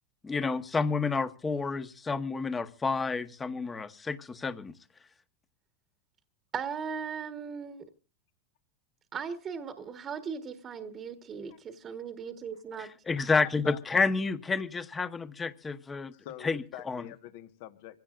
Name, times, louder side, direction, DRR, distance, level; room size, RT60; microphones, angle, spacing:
voice 1, 0.2-4.7 12.8-16.1 16.4-17.0, left 4 dB, 15° left, 1.1 m, -30 dB
voice 2, 6.5-7.8 9.1-12.9, right 6 dB, 30° right, 1.3 m, -38 dB
voice 3, 13.2-13.8 16.1-18.0, left 13 dB, 65° left, 1.4 m, -45 dB
26.5 x 16.5 x 2.5 m
supercardioid pair, 130°, 0 cm